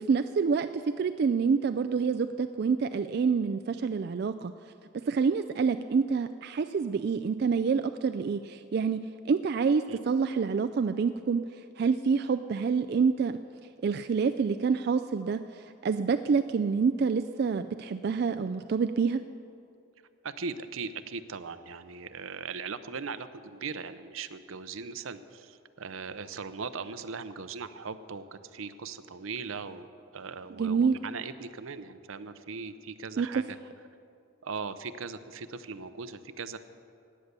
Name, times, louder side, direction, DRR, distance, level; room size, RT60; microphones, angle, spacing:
voice 1, 0.0-4.5 5.1-13.4 13.8-19.2 30.6-31.0 33.2-33.3, right 5 dB, 50° right, 9 dB, 0.3 m, -27 dB
voice 2, 20.2-33.6 34.4-36.6, right 5 dB, 80° right, 12 dB, 0.7 m, -39 dB
16.0 x 9.8 x 6.7 m, 2.5 s
head